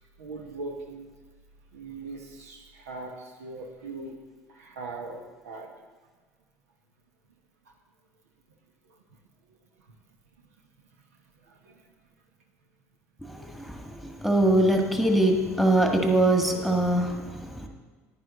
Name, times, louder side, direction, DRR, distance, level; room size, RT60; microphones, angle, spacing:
voice 1, 0.2-1.1 1.7-4.2 4.5-5.7 9.9-10.0 11.5-11.8, right 3 dB, 80° right, 3 dB, 1.2 m, -40 dB
voice 2, 13.2-17.7, right 1 dB, ahead, 3 dB, 1.6 m, -23 dB
10.5 x 9.9 x 3.9 m, 1.4 s
hypercardioid pair, 60°, 8 cm